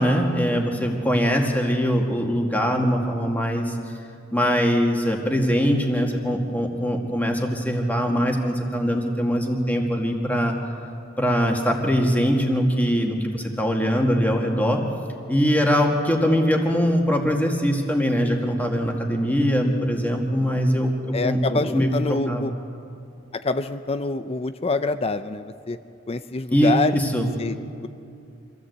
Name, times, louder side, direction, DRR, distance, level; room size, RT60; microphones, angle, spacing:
voice 1, 0.0-3.8 4.3-10.6 11.2-14.8 15.3-22.4 26.5-27.3, equal, 10° left, 1 dB, 2.1 m, -22 dB
voice 2, 21.1-22.5 23.3-25.8 26.1-27.0 27.4-27.6 27.8-27.9, left 3 dB, 30° left, 11 dB, 0.5 m, -26 dB
25.5 x 14.5 x 8.0 m, 2.6 s
head